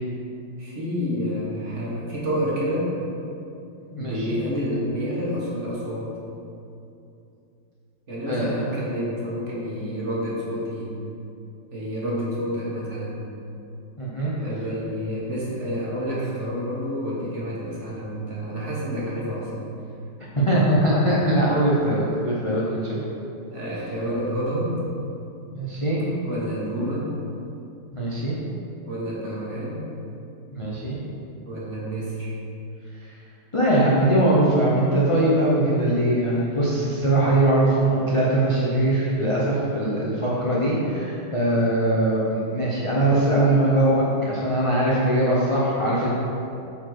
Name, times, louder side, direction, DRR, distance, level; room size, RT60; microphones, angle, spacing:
voice 1, 0.6-2.9 4.0-6.1 8.1-10.9 11.7-13.3 14.4-19.5 23.5-24.8 26.2-27.1 28.9-29.8 31.5-32.3, equal, 35° right, -6 dB, 1.6 m, -29 dB
voice 2, 3.9-4.3 8.3-8.5 14.0-14.3 20.3-23.0 25.5-26.0 27.9-28.4 30.5-31.0 33.5-46.1, right 1 dB, 30° left, -6 dB, 0.5 m, -21 dB
8.6 x 4.6 x 4.8 m, 2.7 s
omnidirectional pair, 2.3 m